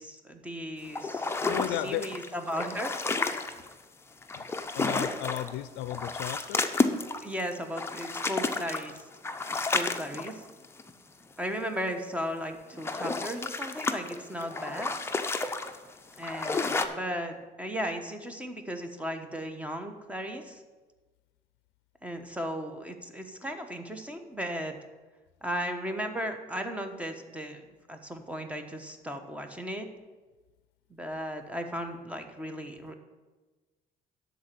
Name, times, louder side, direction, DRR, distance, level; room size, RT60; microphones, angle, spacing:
voice 1, 0.0-2.9 7.2-9.0 9.5-10.4 11.4-14.9 16.2-20.6 22.0-24.8 25.4-29.9 30.9-32.9, equal, 10° right, 6 dB, 1.1 m, -36 dB
sound 1, 1.0-3.7 4.2-5.6 5.8-10.9 12.5-16.9, left 3 dB, 15° left, 0.6 m, -31 dB
voice 2, 1.5-2.1 4.4-4.5 4.7-6.6, left 13 dB, 85° left, 12 dB, 0.4 m, -34 dB
12.0 x 4.1 x 7.5 m, 1.3 s
cardioid pair, 110°, 17 cm